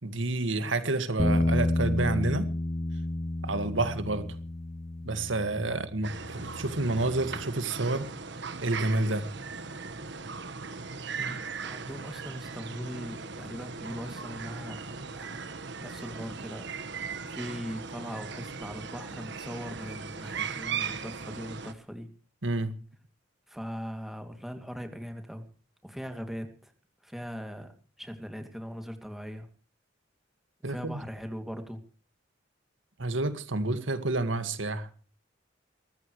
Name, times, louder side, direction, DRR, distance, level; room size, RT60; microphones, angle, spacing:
voice 1, 0.0-2.5 3.4-4.3 5.1-8.1 8.6-9.3 22.4-22.7 30.6-31.0 33.0-34.9, right 2 dB, 80° right, 10 dB, 2.0 m, -29 dB
Bass guitar, 1.2-7.4, left 1 dB, 25° left, 0.7 m, -31 dB
sound 1, 6.0-21.7, right 5 dB, 65° right, 1.5 m, -38 dB
voice 2, 11.2-15.4 15.8-22.1 23.5-25.4 25.8-26.7 27.0-29.5 30.6-31.8, equal, ahead, 6 dB, 2.6 m, -40 dB
25.0 x 14.5 x 3.2 m, 0.39 s
head